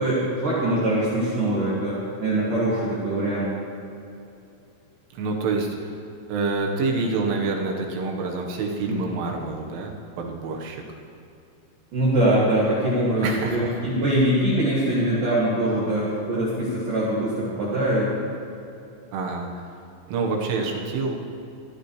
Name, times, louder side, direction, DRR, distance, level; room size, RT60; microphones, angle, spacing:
voice 1, 0.0-3.5 8.9-9.1 11.9-18.1, right 1 dB, 50° right, -8 dB, 3.4 m, -23 dB
voice 2, 5.1-6.0 6.3-10.8 13.2-13.7 14.1-14.2 19.1-19.6 20.1-21.2, right 3 dB, 75° right, 0 dB, 3.8 m, -27 dB
23.0 x 14.5 x 3.3 m, 2.7 s
omnidirectional pair, 5.9 m